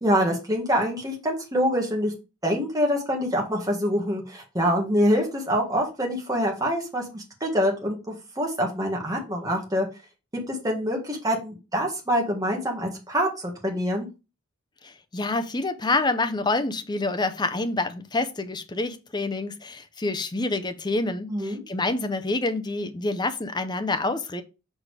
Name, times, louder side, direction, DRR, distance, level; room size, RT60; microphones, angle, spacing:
voice 1, 0.0-2.1 2.4-9.9 10.5-14.1 21.3-21.6, equal, 15° right, 1.6 m, -25 dB
voice 2, 14.8-24.4, left 2 dB, 20° left, 0.6 m, -27 dB
6.3 x 3.7 x 4.8 m
head